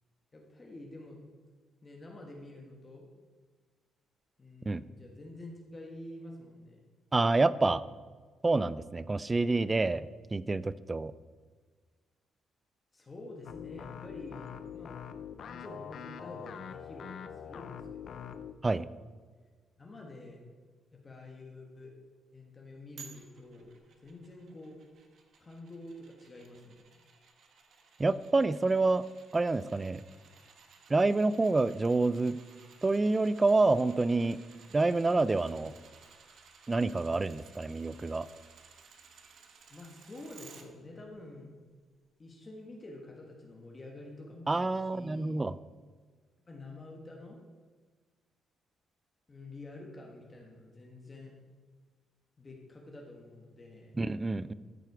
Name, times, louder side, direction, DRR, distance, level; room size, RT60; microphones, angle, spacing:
voice 1, 0.3-1.2 1.8-3.1 4.4-6.8 12.9-14.9 15.4-18.4 19.8-20.4 20.9-21.9 22.3-23.8 24.0-24.8 25.4-26.8 39.7-41.5 42.2-45.4 46.5-47.4 49.3-51.3 52.4-54.1, left 2 dB, 20° left, 0 dB, 1.4 m, -48 dB
voice 2, 7.1-7.8 8.4-11.1 18.6-18.9 28.0-29.0 29.3-30.0 30.9-32.4 32.8-34.4 34.7-35.7 36.7-38.3 44.5-45.6 54.0-54.5, right 3 dB, 15° right, 17 dB, 0.3 m, -27 dB
sound 1, 13.5-18.5, left 8 dB, 50° left, 0.5 m, -44 dB
sound 2, 23.0-40.6 41.1-41.2, right 5 dB, 55° right, 1.4 m, -57 dB
13.5 x 7.8 x 4.8 m, 1.5 s
cardioid pair, 160°, 0 cm